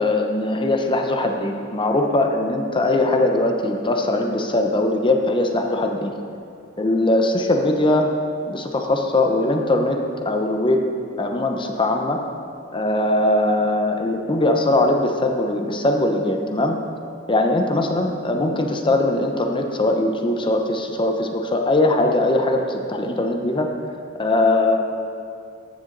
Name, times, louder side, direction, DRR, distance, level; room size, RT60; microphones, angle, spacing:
voice 1, 0.0-6.1 6.8-8.1 8.5-10.0 10.2-10.8 11.2-12.2 12.7-16.8 17.3-23.7 24.2-24.8, left 2 dB, 25° left, 3 dB, 0.7 m, -20 dB
14.0 x 6.9 x 3.9 m, 2.4 s
head